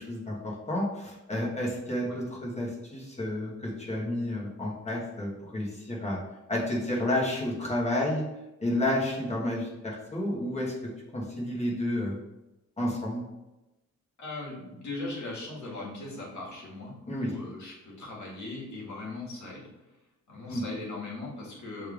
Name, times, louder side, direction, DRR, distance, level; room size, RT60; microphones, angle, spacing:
voice 1, 0.0-6.2 6.5-8.2 8.6-10.7 11.1-12.2 12.8-13.2 17.1-17.3 20.5-20.6, left 1 dB, 20° left, -4 dB, 1.1 m, -30 dB
voice 2, 14.2-19.6 20.3-21.9, left 2 dB, 65° left, -3 dB, 1.6 m, -39 dB
6.5 x 3.3 x 2.4 m, 0.98 s
wide cardioid pair, 160°, 30 cm